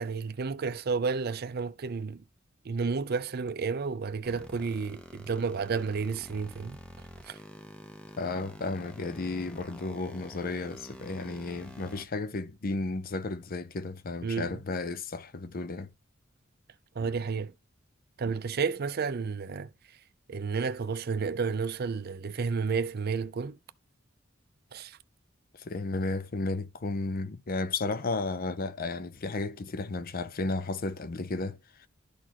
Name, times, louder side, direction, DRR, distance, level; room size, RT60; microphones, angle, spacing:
voice 1, 0.0-2.2 2.7-6.8 7.3-7.4 14.2-14.6 17.0-17.5 18.2-19.7 20.3-23.6 24.7-25.0, right 5 dB, 50° right, 0.5 m, -31 dB
sound 1, 4.2-12.0, equal, 5° left, 0.8 m, -48 dB
voice 2, 8.2-15.9 25.6-31.9, left 3 dB, 45° left, 0.6 m, -33 dB
12.0 x 4.2 x 2.9 m
head